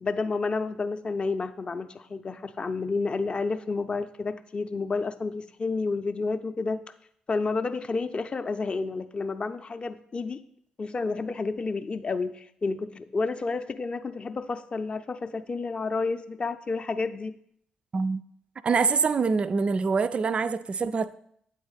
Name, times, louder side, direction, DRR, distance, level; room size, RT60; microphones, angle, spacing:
voice 1, 0.0-6.8 7.3-10.4 10.8-17.3, left 4 dB, 35° left, 0.5 m, -30 dB
voice 2, 18.6-21.1, right 5 dB, 35° right, 0.3 m, -25 dB
8.2 x 4.2 x 4.0 m
figure-of-eight pair, 40°, 3 cm